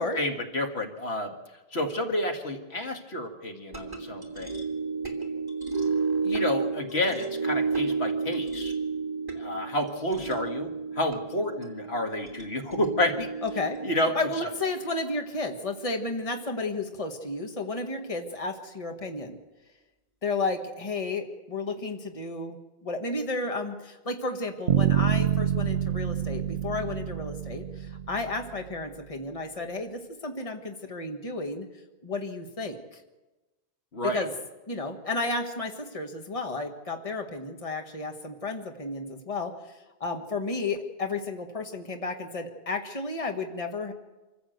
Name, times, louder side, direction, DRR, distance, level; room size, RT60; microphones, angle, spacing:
voice 1, 0.1-1.3 1.7-4.6 6.2-8.7 9.4-13.3 13.8-14.1 33.9-34.2, left 1 dB, 85° left, 4 dB, 2.1 m, -30 dB
sound 1, 3.7-16.1, right 4 dB, 20° right, 2.9 m, -32 dB
voice 2, 13.4-13.8 14.1-19.4 20.2-22.6 22.8-31.7 32.0-33.0 34.0-34.3 34.7-39.5 40.0-43.9, left 3 dB, 35° left, 4 dB, 1.6 m, -32 dB
Bass guitar, 24.7-28.6, right 10 dB, 75° right, 1.2 m, -27 dB
26.5 x 14.5 x 7.9 m, 1.1 s
omnidirectional pair, 1.1 m